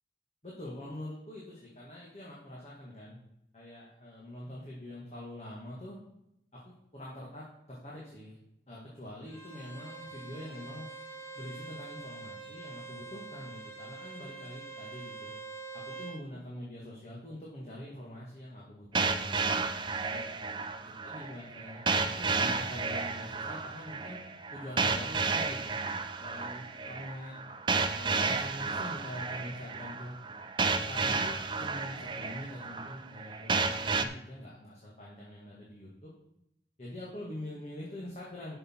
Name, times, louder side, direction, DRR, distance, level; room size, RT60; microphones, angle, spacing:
voice 1, 0.4-3.2 3.5-6.0 6.5-8.4 8.7-10.9 11.4-15.3 15.7-19.6 20.0-20.3 20.7-24.2 24.5-25.8 26.2-27.4 27.7-30.2 30.7-36.1 36.8-38.6, left 1 dB, 35° left, -5 dB, 2.0 m, -44 dB
Bowed string instrument, 9.3-16.2, right 3 dB, 15° left, 2.2 m, -45 dB
sound 1, 18.9-34.0, right 4 dB, 25° right, 0.5 m, -32 dB
11.0 x 6.7 x 4.6 m, 0.82 s
head